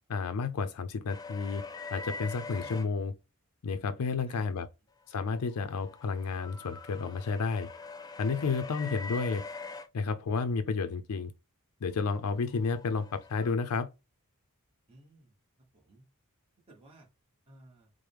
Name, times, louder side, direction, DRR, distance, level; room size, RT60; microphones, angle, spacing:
voice 1, 0.1-1.6 1.9-3.1 3.6-4.7 5.1-7.7 8.2-9.4 9.9-11.3 11.8-13.9, left 4 dB, 80° left, 0.4 m, -31 dB
sound 1, 1.1-2.9 5.3-9.9 12.3-13.6, left 4 dB, 15° left, 0.3 m, -43 dB
voice 2, 14.9-15.4 15.7-16.0 16.7-17.1 17.5-17.9, right 1 dB, 25° right, 1.0 m, -56 dB
4.6 x 2.0 x 3.3 m
head